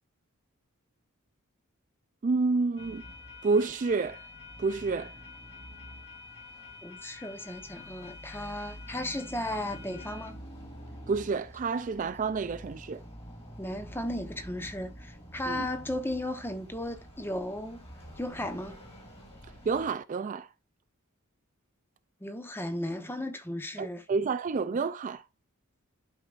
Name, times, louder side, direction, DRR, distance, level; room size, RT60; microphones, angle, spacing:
voice 1, 2.2-3.0 3.4-4.2 4.6-5.1 11.1-13.0 15.5-15.7 19.7-20.5 23.8-25.2, right 4 dB, 35° right, 0.3 m, -29 dB
sound 1, 2.8-19.9, left 1 dB, 25° left, 2.9 m, -47 dB
voice 2, 6.8-10.4 13.6-17.8 18.2-18.7 22.2-24.0, left 1 dB, 10° left, 0.9 m, -35 dB
11.5 x 4.8 x 2.4 m
head